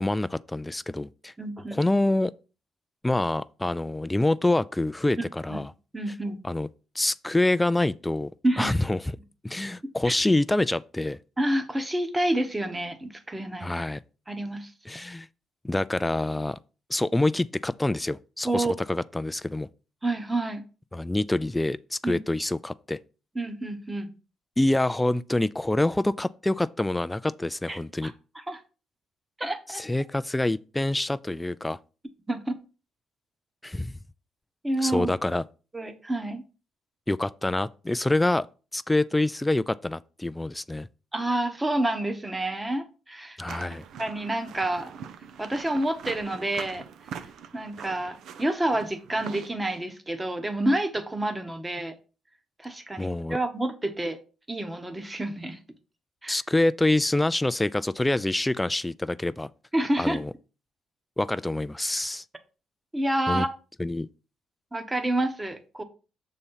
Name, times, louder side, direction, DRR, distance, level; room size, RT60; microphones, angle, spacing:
voice 1, 0.0-1.3 1.7-2.3 3.0-5.7 6.4-6.7 7.0-8.3 8.6-9.0 9.4-11.2 13.6-14.0 14.9-15.3 15.6-16.6 16.9-19.7 20.9-23.0 24.6-28.1 29.7-31.8 33.6-33.9 34.8-35.4 37.1-38.5 38.7-40.9 43.4-43.8 53.0-53.4 56.3-59.5 60.0-60.3 61.2-62.2 63.3-63.5 63.8-64.1, left 2 dB, 10° left, 0.3 m, -26 dB
voice 2, 1.4-1.8 5.5-5.7 5.9-6.4 8.4-8.7 10.0-10.1 11.4-13.7 14.3-14.7 18.4-18.7 20.0-20.6 22.0-22.2 23.3-24.1 27.7-28.6 29.4-29.8 32.3-32.6 34.6-35.1 35.7-36.4 41.1-43.4 44.0-44.9 45.4-46.9 47.5-51.9 52.6-54.2 54.5-55.6 56.2-56.4 59.7-60.2 62.9-63.5 64.7-65.8, right 1 dB, 15° right, 1.2 m, -28 dB
sound 1, 43.5-49.8, right 7 dB, 75° right, 0.7 m, -43 dB
6.7 x 4.2 x 5.6 m
cardioid pair, 90°, 0 cm